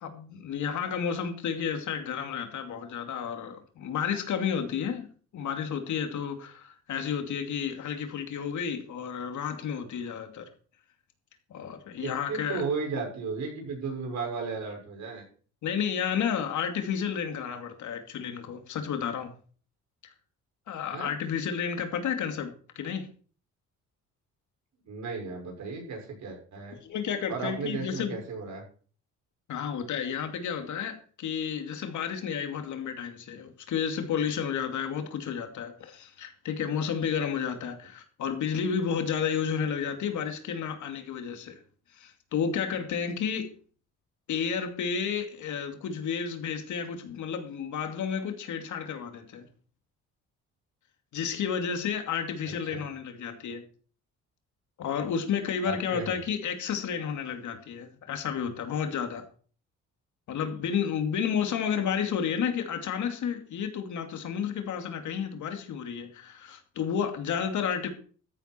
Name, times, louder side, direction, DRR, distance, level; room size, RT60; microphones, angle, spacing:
voice 1, 0.0-10.4 11.5-12.6 15.6-19.3 20.7-23.1 26.7-28.1 29.5-41.6 41.9-43.5 44.3-49.5 51.1-53.6 54.8-59.2 60.3-67.9, left 7 dB, 75° left, 6 dB, 2.6 m, -31 dB
voice 2, 12.0-15.2 20.9-21.1 24.8-26.8 27.3-28.6 52.7-52.8 55.6-56.2, right 4 dB, 65° right, 1 dB, 6.2 m, -34 dB
13.5 x 9.6 x 4.6 m, 0.42 s
cardioid pair, 90°, 30 cm